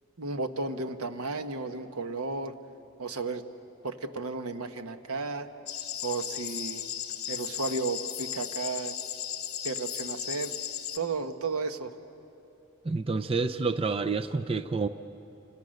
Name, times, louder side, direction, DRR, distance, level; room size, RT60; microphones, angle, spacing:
voice 1, 0.2-2.5 3.0-3.4 3.8-5.5 6.0-6.8 7.3-9.0 9.6-10.6 10.9-12.0, right 3 dB, 90° right, 8 dB, 1.2 m, -33 dB
sound 1, 5.7-11.0, left 10 dB, 45° left, 1.2 m, -36 dB
voice 2, 12.8-14.9, right 4 dB, 25° right, 9 dB, 0.5 m, -28 dB
29.0 x 26.0 x 6.5 m, 2.9 s
head